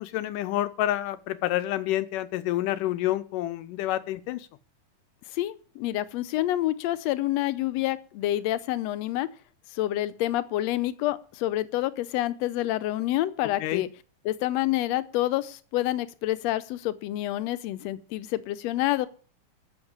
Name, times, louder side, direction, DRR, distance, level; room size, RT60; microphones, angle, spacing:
voice 1, 0.0-4.5 13.6-13.8, left 14 dB, 90° left, 2.4 m, -28 dB
voice 2, 5.3-9.3 9.7-13.9 14.2-19.1, left 15 dB, 75° left, 1.7 m, -28 dB
14.0 x 6.3 x 8.8 m
omnidirectional pair, 3.7 m